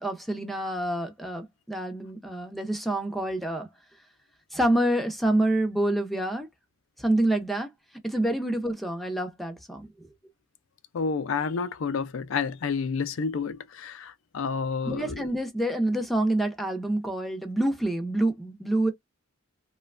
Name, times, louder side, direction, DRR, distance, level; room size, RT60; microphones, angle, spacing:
voice 1, 0.0-3.7 4.5-6.5 7.0-7.7 8.0-10.1 14.8-18.9, right 1 dB, ahead, 0.5 m, -27 dB
voice 2, 10.9-15.3, left 5 dB, 70° left, 0.4 m, -30 dB
3.0 x 2.2 x 2.4 m
head